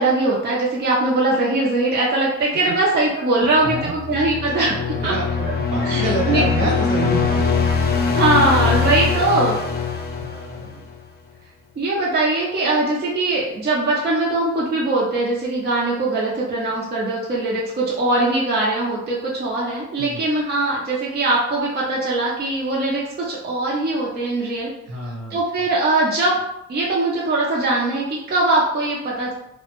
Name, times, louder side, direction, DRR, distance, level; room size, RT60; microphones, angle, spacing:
voice 1, 0.0-4.7 5.0-5.1 5.8-6.0 6.3-6.4 8.1-9.6 11.8-24.7 25.3-26.3 26.7-29.3, right 2 dB, 35° right, -5 dB, 0.5 m, -21 dB
voice 2, 3.3-3.9 4.6-7.4 10.2-10.9 20.0-20.2 24.9-25.4, right 3 dB, 65° right, -4 dB, 1.2 m, -28 dB
sound 1, 3.6-11.0, left 5 dB, 35° left, 0.4 m, -22 dB
2.1 x 2.1 x 2.9 m, 0.84 s
cardioid pair, 90°, 30 cm